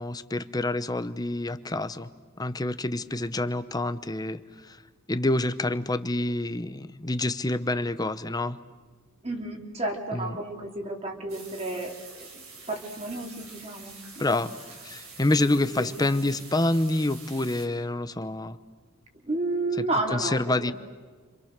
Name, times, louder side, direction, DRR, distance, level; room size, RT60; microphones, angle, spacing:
voice 1, 0.0-2.1 2.4-4.8 5.1-8.6 10.1-10.4 14.2-14.5 14.8-18.6 20.1-20.7, left 2 dB, 20° left, 11 dB, 0.9 m, -27 dB
voice 2, 9.2-14.4 15.4-15.5 15.7-16.1 19.2-20.7, right 2 dB, 30° right, 1 dB, 3.2 m, -32 dB
sound 1, 11.3-17.7, right 4 dB, 85° right, 6.4 m, -46 dB
29.5 x 26.5 x 6.7 m, 1.4 s
head